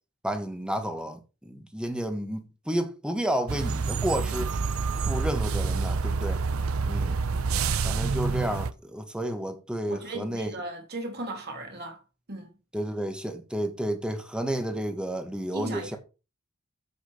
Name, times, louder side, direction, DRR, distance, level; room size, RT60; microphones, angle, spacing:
voice 1, 0.2-4.5 5.0-6.4 6.9-7.2 7.8-10.5 12.7-16.0, right 1 dB, 5° right, 1.3 m, -31 dB
sound 1, 3.5-8.7, right 4 dB, 80° right, 0.6 m, -27 dB
voice 2, 9.8-12.0 12.3-12.5 15.5-16.0, right 2 dB, 50° right, 3.0 m, -36 dB
7.6 x 6.8 x 4.9 m
head